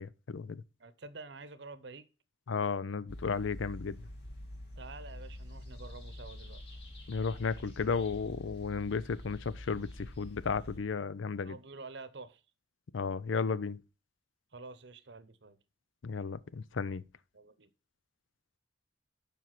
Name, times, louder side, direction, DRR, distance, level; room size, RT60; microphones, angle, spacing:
voice 1, 0.0-0.6 2.5-4.0 7.1-11.6 12.9-13.8 16.0-17.0, left 5 dB, 80° left, 0.5 m, -34 dB
voice 2, 0.8-2.1 4.8-6.8 11.4-12.4 14.5-15.6 17.3-17.7, right 3 dB, 60° right, 0.8 m, -48 dB
sound 1, 3.1-10.8, left 1 dB, 60° left, 5.0 m, -46 dB
7.4 x 5.4 x 5.9 m
head